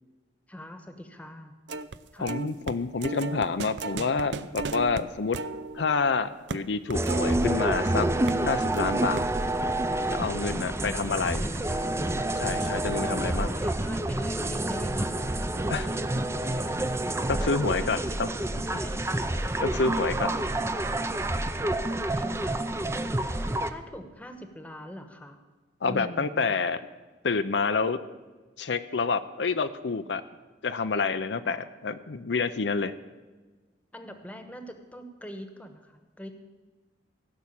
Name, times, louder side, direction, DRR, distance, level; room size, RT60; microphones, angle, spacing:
voice 1, 0.5-1.5 2.1-2.3 10.2-11.9 12.6-12.7 13.0-16.7 17.4-19.0 19.8-25.4 25.8-26.5 31.4-31.6 33.9-36.3, equal, 10° left, 6 dB, 1.1 m, -43 dB
sound 1, 1.7-2.0 2.3-7.9 8.3-8.5 8.7-9.6, right 4 dB, 80° right, 0.5 m, -36 dB
voice 2, 2.2-5.4 5.7-8.1 8.5-9.2 10.1-11.4 12.4-13.5 15.7-15.9 17.3-18.3 19.6-20.3 25.8-26.8 27.2-28.0 28.6-30.2 30.6-32.9, left 4 dB, 80° left, 11 dB, 0.6 m, -28 dB
sound 2, 6.9-23.7, right 1 dB, 15° right, 0.5 m, -28 dB
16.0 x 6.1 x 8.6 m, 1.3 s
head